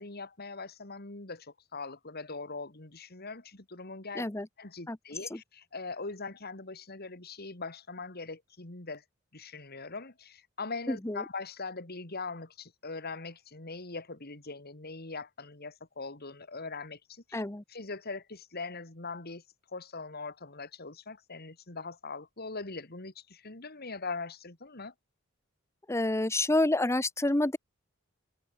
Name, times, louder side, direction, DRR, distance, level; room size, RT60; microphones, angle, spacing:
voice 1, 0.0-4.2 4.6-9.0 9.3-17.4 17.7-24.9, left 3 dB, 50° left, 2.8 m, -41 dB
voice 2, 4.1-4.5 4.9-5.0 5.3-5.4 10.9-11.2 17.3-17.6 25.9-27.6, left 2 dB, 15° left, 0.9 m, -28 dB
head